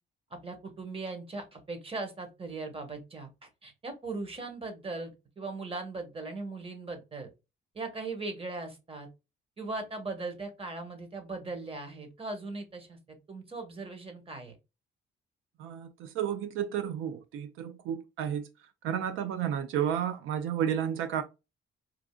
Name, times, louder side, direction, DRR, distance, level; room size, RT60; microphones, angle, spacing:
voice 1, 0.3-7.3 7.7-9.1 9.6-13.0 13.3-14.5, right 3 dB, 30° right, 1.3 m, -39 dB
voice 2, 15.6-18.5 18.8-21.2, right 9 dB, 85° right, 0.4 m, -32 dB
4.5 x 2.5 x 2.2 m
cardioid pair, 90°, 20 cm